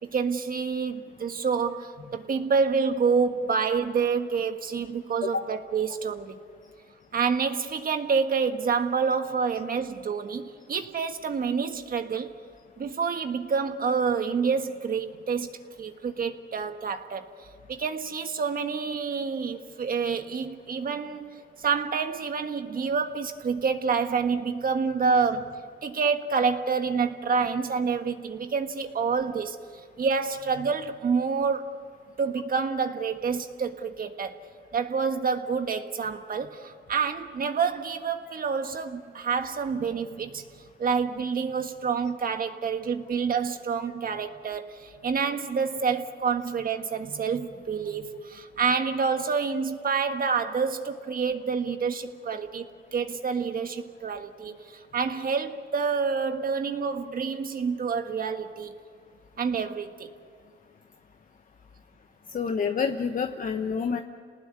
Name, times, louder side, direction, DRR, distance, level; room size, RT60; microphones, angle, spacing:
voice 1, 0.0-6.4 7.1-12.3 12.8-15.5 15.8-29.6 30.0-31.8 32.2-34.4 34.7-40.4 40.8-52.7 52.9-58.7 59.4-60.1, right 5 dB, 45° right, 1.6 m, -28 dB
voice 2, 62.3-64.0, left 6 dB, 40° left, 1.1 m, -28 dB
29.0 x 19.5 x 9.7 m
cardioid pair, 90°, 20 cm